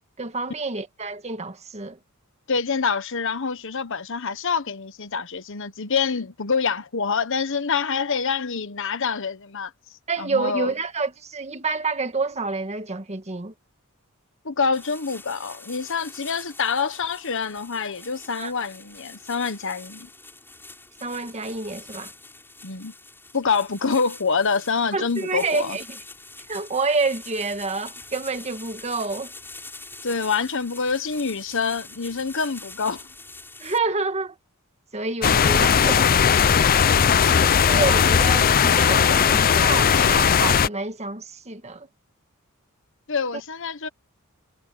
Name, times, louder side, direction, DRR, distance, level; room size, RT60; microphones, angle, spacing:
voice 1, 0.2-2.0 10.1-13.5 18.4-18.5 21.0-22.1 24.9-26.0 26.5-29.3 33.6-34.3 34.9-36.1 37.3-41.9 43.3-43.4, right 3 dB, 30° right, 1.7 m, -28 dB
voice 2, 2.5-9.7 10.2-10.7 14.4-20.1 22.6-22.9 23.3-25.8 30.0-33.0 43.1-43.9, left 5 dB, 65° left, 1.2 m, -26 dB
sound 1, 14.7-33.8, left 3 dB, 10° left, 7.4 m, -44 dB
sound 2, 35.2-40.7, left 7 dB, 45° left, 0.5 m, -18 dB
head